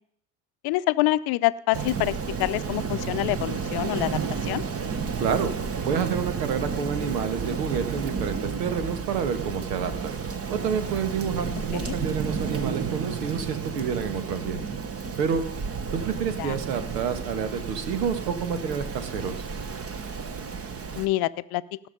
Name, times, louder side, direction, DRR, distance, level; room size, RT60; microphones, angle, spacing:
voice 1, 0.6-4.6 11.7-11.9 16.4-16.5 21.0-21.6, left 18 dB, 50° left, 15 dB, 0.7 m, -26 dB
Rain, 1.7-21.1, right 6 dB, 30° right, 1.2 m, -32 dB
voice 2, 5.2-5.5 5.8-10.1 10.5-14.7 15.2-15.4 15.9-19.3, right 6 dB, 85° right, 11 dB, 1.6 m, -29 dB
17.5 x 6.3 x 5.2 m, 0.65 s
hypercardioid pair, 80°, 48 cm